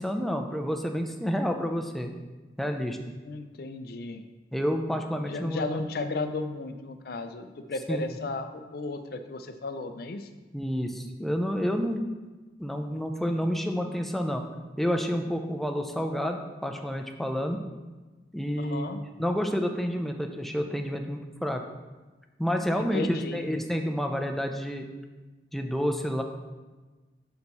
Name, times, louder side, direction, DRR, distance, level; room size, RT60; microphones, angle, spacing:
voice 1, 0.0-2.1 2.6-3.0 4.5-5.6 7.9-8.0 10.5-12.0 12.6-14.4 14.8-17.6 18.3-21.6 22.4-24.9 25.5-26.2, equal, ahead, 3 dB, 0.4 m, -29 dB
voice 2, 3.2-4.2 5.2-10.3 18.6-19.0 22.8-23.5, left 3 dB, 60° left, 8 dB, 0.5 m, -34 dB
6.5 x 4.5 x 4.1 m, 1.2 s
head